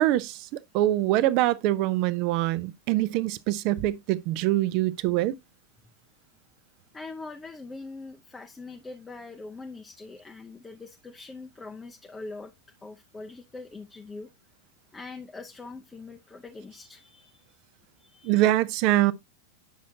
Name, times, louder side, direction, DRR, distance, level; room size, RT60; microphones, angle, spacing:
voice 1, 0.0-5.3 18.2-19.1, right 15 dB, 45° right, 0.6 m, -24 dB
voice 2, 6.9-12.5 12.8-14.3 14.9-17.5 18.0-18.5, left 3 dB, 10° left, 0.7 m, -42 dB
9.3 x 6.3 x 2.8 m
figure-of-eight pair, 90°, 0 cm